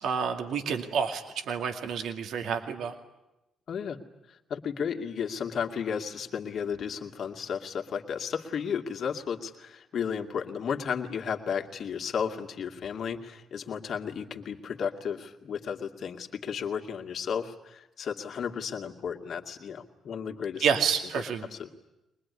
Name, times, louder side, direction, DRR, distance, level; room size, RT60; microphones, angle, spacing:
voice 1, 0.0-2.9 20.6-21.4, right 6 dB, 75° right, 5 dB, 2.3 m, -29 dB
voice 2, 3.7-4.0 4.3-20.7 21.1-21.2 21.5-21.7, left 7 dB, 60° left, 4 dB, 2.4 m, -33 dB
23.5 x 20.5 x 9.8 m, 0.93 s
cardioid pair, 90°, 0 cm